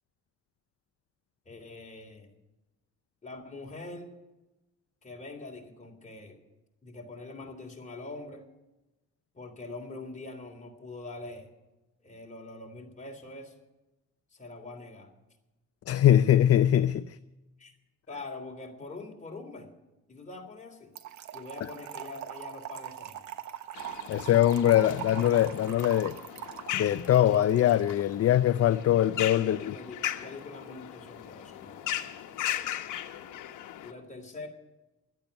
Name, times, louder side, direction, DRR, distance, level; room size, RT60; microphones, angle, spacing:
voice 1, 1.4-2.3 3.2-4.1 5.0-6.4 6.8-8.5 9.3-11.5 12.0-13.5 14.3-15.1 17.6-17.7 18.1-19.7 20.1-20.9 21.3-23.3 29.4-31.9 33.8-34.5, left 2 dB, 25° left, 2 dB, 3.3 m, -44 dB
voice 2, 15.9-17.2 24.1-26.1 26.7-29.7, left 11 dB, 50° left, 13 dB, 0.5 m, -22 dB
Trickle dribble / Fill (with liquid), 21.0-28.0, right 10 dB, 70° right, 1.2 m, -42 dB
sound 1, 23.7-33.9, left 12 dB, 80° left, 1.1 m, -38 dB
12.0 x 8.7 x 9.7 m, 1.0 s
cardioid pair, 90°, 30 cm